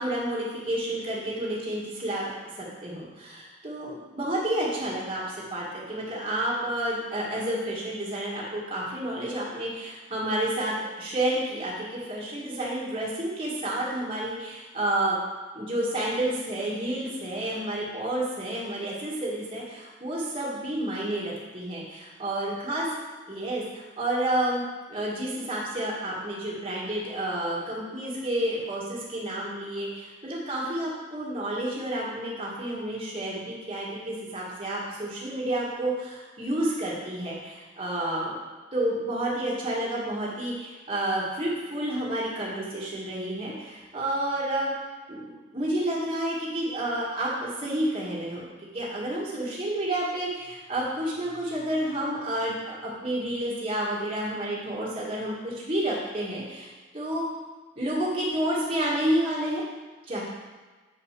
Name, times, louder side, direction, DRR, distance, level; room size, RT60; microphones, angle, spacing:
voice 1, 0.0-15.2 15.5-22.9 23.3-24.6 24.9-38.4 38.7-44.7 45.1-56.7 56.9-57.2 57.8-59.6 60.1-60.2, right 1 dB, 25° right, -6 dB, 2.1 m, -30 dB
7.6 x 5.5 x 5.9 m, 1.3 s
head